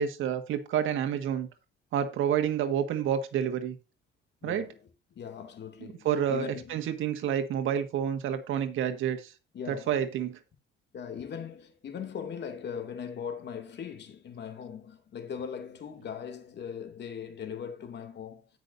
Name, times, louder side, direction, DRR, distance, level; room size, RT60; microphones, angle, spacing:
voice 1, 0.0-1.5 1.9-3.8 4.4-4.6 6.0-9.3 9.7-10.4, right 9 dB, 85° right, 1.6 m, -29 dB
voice 2, 4.4-4.8 5.2-6.9 9.5-10.0 10.9-18.5, left 7 dB, 60° left, 2.3 m, -40 dB
17.5 x 6.1 x 2.6 m
cardioid pair, 90°, 20 cm